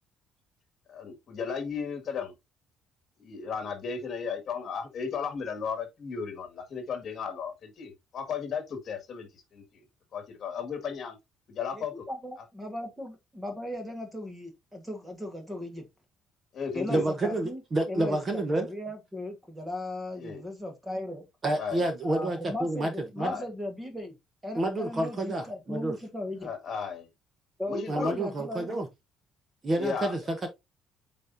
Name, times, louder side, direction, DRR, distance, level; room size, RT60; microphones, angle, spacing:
voice 1, 0.9-2.3 3.2-9.8 10.1-11.2 11.5-12.1 16.5-17.1 20.2-20.5 21.5-21.9 23.2-23.5 26.4-27.1 27.7-28.2 29.8-30.1, left 6 dB, 40° left, 1.9 m, -35 dB
voice 2, 11.7-15.8 16.7-17.6 17.9-18.2 18.5-21.2 22.0-24.1 24.4-26.5 27.6-28.8, left 1 dB, 5° right, 1.4 m, -37 dB
voice 3, 16.9-18.7 21.4-23.3 24.6-26.0 27.9-28.9 29.6-30.5, right 1 dB, 25° right, 1.0 m, -29 dB
8.4 x 4.2 x 2.7 m
cardioid pair, 165°, 0 cm